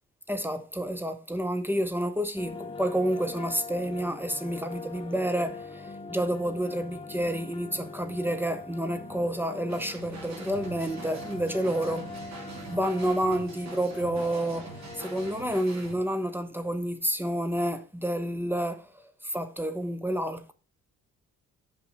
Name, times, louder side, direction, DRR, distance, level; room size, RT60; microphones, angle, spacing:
voice 1, 0.3-12.1 12.4-20.5, right 1 dB, 5° right, 0.8 m, -29 dB
sound 1, 2.4-15.6, left 3 dB, 15° left, 1.0 m, -42 dB
sound 2, 9.7-16.0, right 3 dB, 65° right, 2.7 m, -45 dB
Bowed string instrument, 10.2-15.4, right 6 dB, 40° right, 1.5 m, -51 dB
5.5 x 5.4 x 4.5 m
cardioid pair, 90°, 30 cm